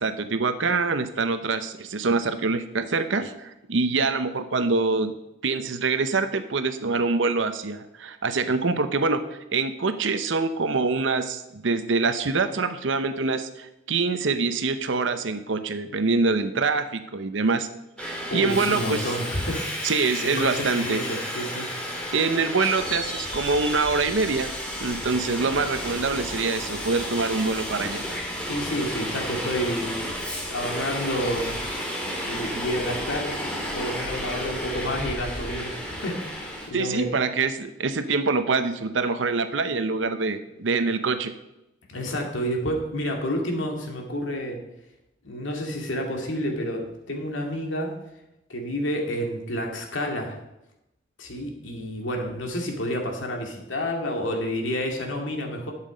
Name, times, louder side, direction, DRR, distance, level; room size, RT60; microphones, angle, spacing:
voice 1, 0.0-5.1 5.4-9.2 9.5-17.7 18.0-19.1 19.8-21.0 22.1-24.5 24.8-28.0 36.7-41.3, right 4 dB, 75° right, 10 dB, 0.7 m, -25 dB
Subway metro underground, 18.0-36.7, equal, 5° left, 2.1 m, -32 dB
voice 2, 18.3-21.7 28.5-30.1 30.5-31.6 32.2-33.4 33.7-37.1 41.9-44.6 45.2-47.9 48.5-50.4 51.2-55.7, equal, 80° left, 2 dB, 2.3 m, -29 dB
11.5 x 7.4 x 5.0 m, 0.89 s
head